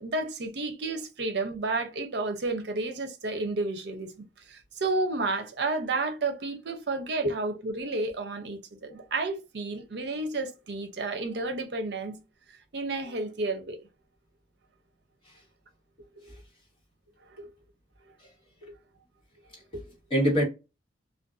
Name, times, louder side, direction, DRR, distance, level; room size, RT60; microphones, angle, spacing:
voice 1, 0.0-4.1 4.5-12.2 12.7-13.8, right 3 dB, 60° right, 0.6 m, -31 dB
voice 2, 19.7-20.4, equal, 30° left, 1.3 m, -26 dB
2.5 x 2.2 x 2.4 m
head